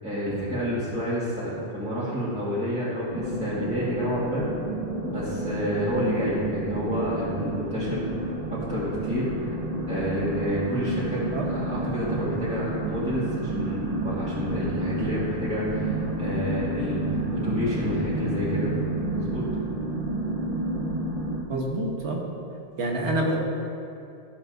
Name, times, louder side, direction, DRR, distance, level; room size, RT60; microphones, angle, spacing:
voice 1, 0.0-4.5 5.0-9.6 9.9-11.2 11.5-18.7 19.1-19.4, equal, 5° right, -11 dB, 2.0 m, -29 dB
sound 1, 3.1-21.4, right 2 dB, 40° right, 0.7 m, -30 dB
voice 2, 21.5-22.2 22.8-23.4, right 1 dB, 75° right, -1 dB, 1.4 m, -27 dB
13.0 x 6.9 x 2.6 m, 2.6 s
omnidirectional pair, 1.2 m